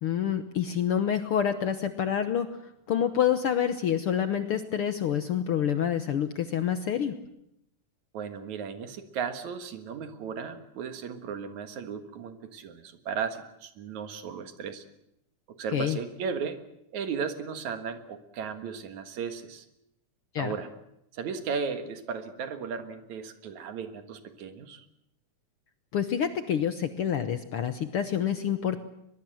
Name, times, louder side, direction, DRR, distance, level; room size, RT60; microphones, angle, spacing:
voice 1, 0.0-2.5 2.9-7.1 15.7-16.0 20.3-20.5 25.9-28.8, left 9 dB, 65° left, 9 dB, 1.5 m, -27 dB
voice 2, 8.1-14.8 15.5-16.6 16.9-19.7 20.4-20.7 21.1-24.9, right 6 dB, 70° right, 8 dB, 2.9 m, -35 dB
23.0 x 21.5 x 7.8 m, 0.80 s
omnidirectional pair, 3.5 m